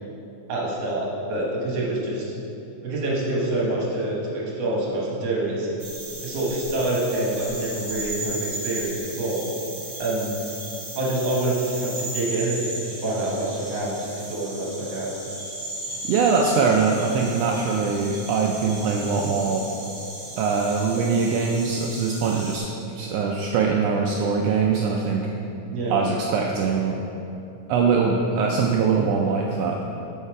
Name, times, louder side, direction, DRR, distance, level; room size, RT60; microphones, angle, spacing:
voice 1, 0.5-2.3 2.8-5.7 6.2-9.5 10.0-10.4 10.9-15.2 25.7-26.0, right 2 dB, 65° right, -4 dB, 2.2 m, -26 dB
sound 1, 5.8-22.6, right 1 dB, 25° right, 1.1 m, -36 dB
voice 2, 16.1-19.6 20.4-22.7 22.9-25.3 25.9-27.0 27.7-29.8, right 5 dB, 85° right, 0 dB, 1.4 m, -22 dB
6.6 x 5.5 x 4.7 m, 2.9 s
omnidirectional pair, 3.3 m